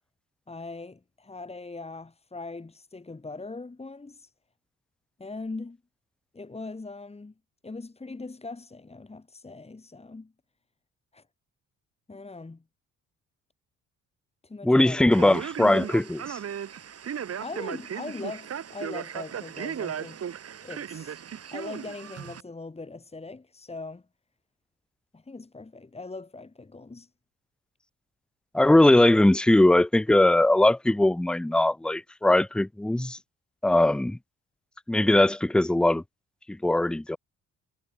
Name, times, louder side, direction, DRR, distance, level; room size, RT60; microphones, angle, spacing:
voice 1, 0.5-4.3 5.2-5.8 6.3-7.3 7.6-10.3 11.1-11.2 12.1-12.6 14.4-15.2 17.4-20.3 20.6-21.2 21.5-24.0 25.1-27.1, left 3 dB, 20° left, 4.0 m, -40 dB
voice 2, 14.6-16.4 28.5-33.2 33.6-34.2 34.9-36.0 36.5-37.2, left 1 dB, 5° left, 0.5 m, -20 dB
Male speech man speaking, 15.1-22.4, right 8 dB, 55° right, 3.3 m, -36 dB
cardioid pair, 90°, 30 cm